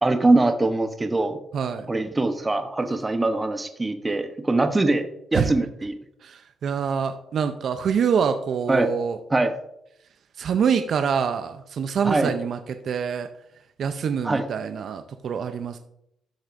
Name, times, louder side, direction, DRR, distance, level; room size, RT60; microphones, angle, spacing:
voice 1, 0.0-1.4 1.9-5.9 8.7-8.9 9.3-9.5 12.0-12.3 14.2-14.5, right 2 dB, 20° right, 7 dB, 0.9 m, -22 dB
voice 2, 1.5-1.9 5.3-5.5 6.2-9.2 10.4-13.3 13.8-15.8, right 7 dB, 60° right, 8 dB, 0.5 m, -25 dB
12.5 x 6.2 x 2.6 m, 0.76 s
cardioid pair, 90°, 0 cm